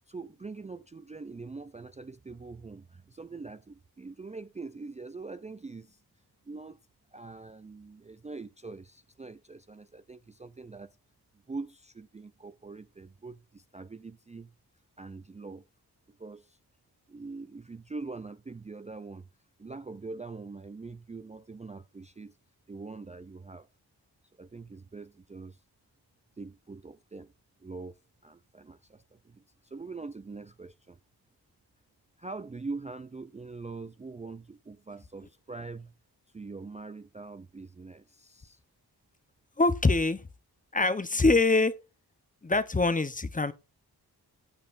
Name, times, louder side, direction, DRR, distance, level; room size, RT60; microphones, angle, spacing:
voice 1, 0.1-6.0 6.5-6.8 7.1-11.0 11.5-14.5 15.0-15.6 16.1-16.6 17.1-19.3 19.6-22.4 22.7-23.7 24.4-25.6 26.4-27.3 27.6-31.0 32.2-35.9 36.3-38.6, right 3 dB, 20° right, 0.4 m, -43 dB
voice 2, 39.6-40.2 40.7-41.7 42.4-43.5, left 3 dB, 20° left, 0.8 m, -24 dB
18.0 x 6.6 x 2.5 m
cardioid pair, 80°, 39 cm